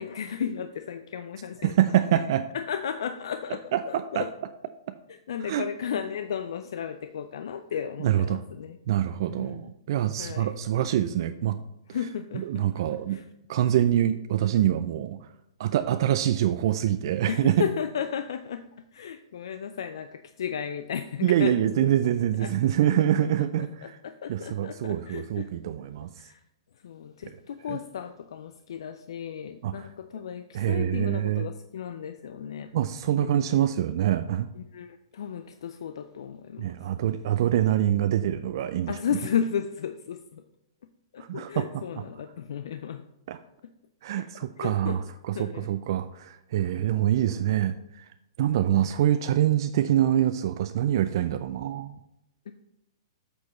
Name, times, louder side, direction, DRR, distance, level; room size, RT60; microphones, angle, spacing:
voice 1, 0.0-1.7 2.5-3.6 3.9-4.3 5.1-8.8 9.3-9.7 10.2-10.5 11.9-13.3 17.3-18.6 18.9-21.9 22.4-22.5 23.0-23.1 23.6-25.5 26.2-26.4 26.8-32.7 33.2-33.4 34.6-36.7 38.9-40.4 41.1-43.0 44.1-44.2 44.6-45.0 45.3-45.7 52.5-52.6, left 8 dB, 70° left, 9 dB, 0.4 m, -34 dB
voice 2, 1.6-2.4 3.7-4.3 5.4-5.7 8.0-8.4 8.9-11.6 12.3-13.2 13.5-15.2 15.6-17.6 21.2-24.0 24.3-26.1 27.7-27.8 29.6-29.9 30.5-31.5 32.7-34.5 36.6-39.0 41.2-42.0 43.3-43.4 44.0-48.0 48.4-52.0, right 11 dB, 60° right, 10 dB, 0.3 m, -25 dB
8.3 x 6.2 x 3.1 m, 0.85 s
hypercardioid pair, 120°, 3 cm